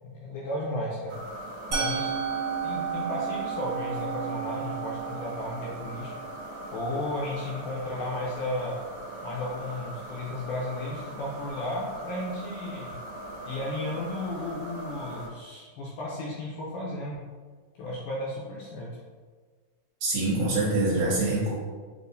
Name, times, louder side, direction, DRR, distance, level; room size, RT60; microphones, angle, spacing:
voice 1, 0.0-1.2 1.7-2.1 2.6-6.1 6.7-8.8 9.2-12.9 13.5-17.2 17.8-18.9, left 1 dB, 80° left, -5 dB, 1.9 m, -34 dB
sound 1, 1.1-15.3, right 1 dB, 90° right, 1.7 m, -40 dB
Musical instrument, 1.7-7.6, right 7 dB, 50° right, 1.6 m, -34 dB
voice 2, 20.0-21.6, right 2 dB, 70° right, -7 dB, 2.4 m, -25 dB
6.5 x 2.5 x 2.6 m, 1.5 s
omnidirectional pair, 4.2 m